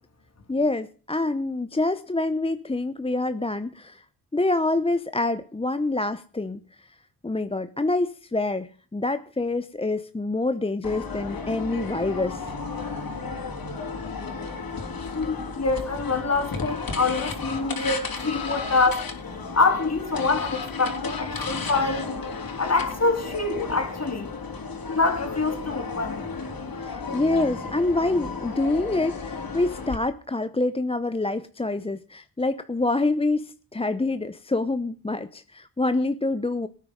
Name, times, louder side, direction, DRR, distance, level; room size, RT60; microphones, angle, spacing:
voice 1, 0.5-4.0 4.3-6.9 7.2-12.5 26.7-36.7, left 2 dB, 15° left, 0.7 m, -26 dB
sound 1, 10.8-29.9, left 4 dB, 55° left, 3.6 m, -33 dB
voice 2, 15.1-19.0 19.5-22.1 22.6-24.3 24.9-26.2, left 3 dB, 40° left, 3.8 m, -25 dB
18.0 x 9.4 x 5.2 m
cardioid pair, 65°, 41 cm